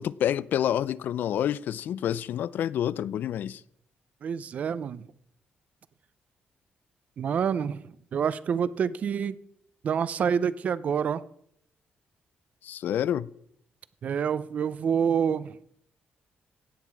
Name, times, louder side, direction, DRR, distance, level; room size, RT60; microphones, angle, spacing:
voice 1, 0.0-3.6 12.6-13.3, left 10 dB, 65° left, 0.4 m, -28 dB
voice 2, 4.2-5.1 7.2-7.8 8.1-9.4 9.8-11.2 14.0-15.6, right 7 dB, 45° right, 0.5 m, -27 dB
17.0 x 9.1 x 4.7 m
wide cardioid pair, 175°, 3 cm